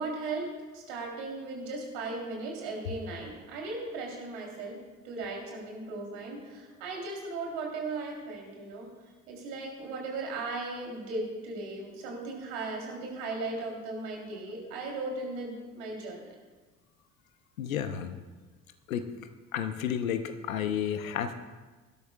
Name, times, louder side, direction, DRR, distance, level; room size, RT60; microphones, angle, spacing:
voice 1, 0.0-8.9 9.3-16.3, right 3 dB, 65° right, -1 dB, 3.5 m, -37 dB
voice 2, 17.6-18.2 18.9-19.1 19.5-21.4, left 9 dB, 75° left, 9 dB, 0.9 m, -31 dB
22.0 x 12.5 x 2.4 m, 1.3 s
figure-of-eight pair, 55°, 41 cm